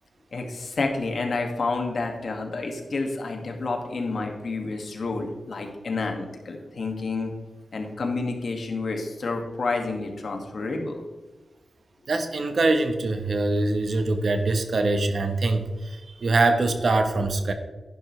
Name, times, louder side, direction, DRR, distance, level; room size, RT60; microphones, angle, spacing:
voice 1, 0.3-7.3 7.7-11.0, left 3 dB, 65° left, 3 dB, 2.1 m, -29 dB
voice 2, 12.1-17.5, right 2 dB, 60° right, 7 dB, 1.2 m, -23 dB
11.0 x 11.0 x 3.3 m, 1.2 s
wide cardioid pair, 95°, 0 cm